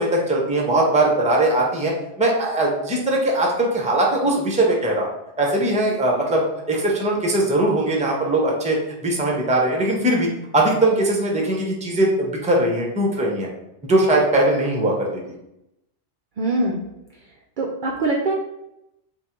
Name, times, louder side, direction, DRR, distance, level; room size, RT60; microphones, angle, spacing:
voice 1, 0.0-10.3 10.5-13.5 13.8-15.1, right 1 dB, 10° right, -1 dB, 0.5 m, -20 dB
voice 2, 16.4-16.8 17.6-18.3, right 2 dB, 60° right, -1 dB, 0.5 m, -22 dB
3.6 x 2.4 x 4.3 m, 0.86 s
omnidirectional pair, 1.2 m